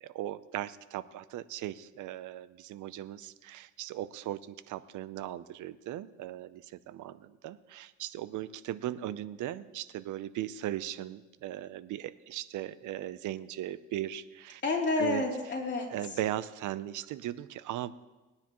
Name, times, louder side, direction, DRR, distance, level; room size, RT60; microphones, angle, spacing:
voice 1, 0.0-14.6 15.0-15.2 15.9-17.9, right 13 dB, 80° right, 16 dB, 0.6 m, -38 dB
voice 2, 14.6-16.2, left 3 dB, 35° left, -2 dB, 3.3 m, -30 dB
20.0 x 9.7 x 3.0 m, 1.2 s
cardioid pair, 90°, 30 cm